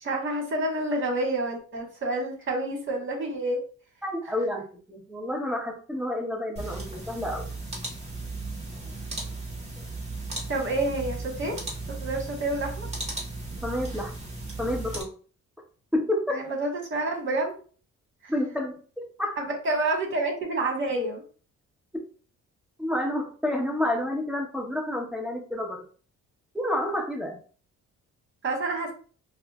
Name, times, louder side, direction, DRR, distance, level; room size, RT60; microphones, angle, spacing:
voice 1, 0.0-3.6 10.5-11.5 12.0-12.9 16.3-17.5 18.2-18.3 19.4-21.2 28.4-28.9, right 2 dB, 40° right, 1 dB, 1.4 m, -28 dB
voice 2, 4.0-7.5 13.6-14.1 14.6-15.1 15.9-16.4 18.3-19.3 22.8-25.8 26.5-27.4, left 1 dB, 5° right, 0 dB, 1.0 m, -29 dB
sound 1, 6.6-15.0, right 2 dB, 20° right, 1.4 m, -36 dB
4.8 x 2.0 x 2.4 m, 0.40 s
cardioid pair, 90°, 30 cm